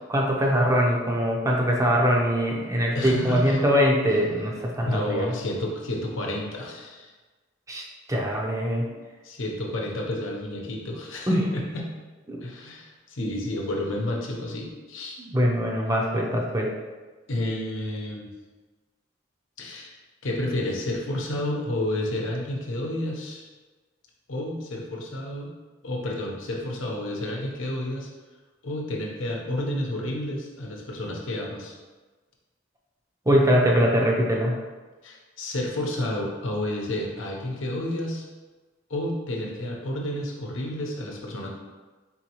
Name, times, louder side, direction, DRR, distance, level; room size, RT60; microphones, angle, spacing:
voice 1, 0.1-5.3 7.7-8.8 11.3-11.5 12.3-12.4 15.2-16.7 33.3-34.6, equal, 15° right, -1 dB, 0.6 m, -22 dB
voice 2, 2.9-3.6 4.8-7.1 8.8-9.0 9.2-11.8 12.4-15.2 17.3-18.3 19.6-20.0 20.2-23.5 24.3-25.5 25.8-28.1 28.6-31.7 35.0-38.3 38.9-41.5, left 1 dB, 90° left, -1 dB, 0.9 m, -30 dB
4.2 x 4.1 x 3.0 m, 1.3 s
head